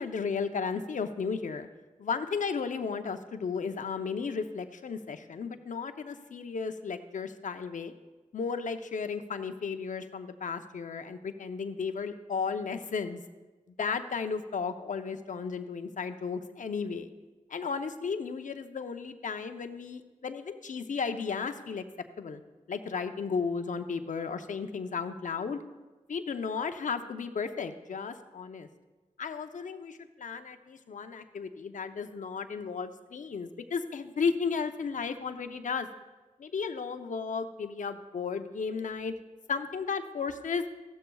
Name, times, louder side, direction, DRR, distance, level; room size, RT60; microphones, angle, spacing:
voice 1, 0.0-1.7 2.0-7.9 8.3-13.2 13.8-17.1 17.5-21.8 22.2-22.4 22.7-25.6 26.1-28.7 29.2-35.9 36.4-39.1 39.5-40.6, left 5 dB, 75° left, 8 dB, 0.7 m, -34 dB
15.0 x 12.5 x 2.4 m, 1.2 s
cardioid pair, 45°, 13 cm